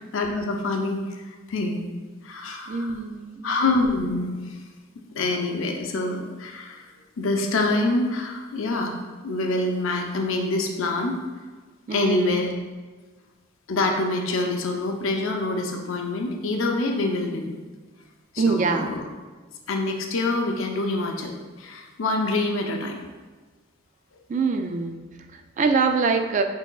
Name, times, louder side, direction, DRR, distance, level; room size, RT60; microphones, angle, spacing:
voice 1, 0.1-1.2 1.5-1.9 2.2-2.9 3.4-4.6 5.1-6.8 7.2-8.9 9.2-11.2 11.9-12.5 13.7-17.5 18.3-19.0 19.7-23.0, left 2 dB, 75° left, 2 dB, 0.6 m, -26 dB
voice 2, 2.7-3.6 11.9-12.3 18.4-18.9 24.3-26.4, right 4 dB, 40° right, 6 dB, 0.3 m, -24 dB
4.8 x 4.5 x 2.3 m, 1.4 s
head